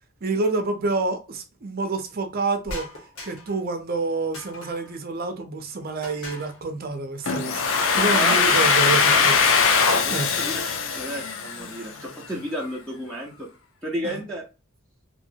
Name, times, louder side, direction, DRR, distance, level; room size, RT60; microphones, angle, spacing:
voice 1, 0.2-2.9 3.2-9.5 10.1-10.3 14.0-14.2, right 3 dB, 45° right, 0.5 m, -28 dB
sound 1, 2.7-3.6 4.3-5.0 6.0-6.6 7.6-8.4, left 1 dB, 85° left, 1.0 m, -40 dB
Domestic sounds home sounds, 7.3-12.0, left 5 dB, 60° left, 0.4 m, -21 dB
voice 2, 10.0-10.6 10.9-13.5 13.8-14.5, equal, 5° left, 0.6 m, -32 dB
2.9 x 2.5 x 2.7 m
head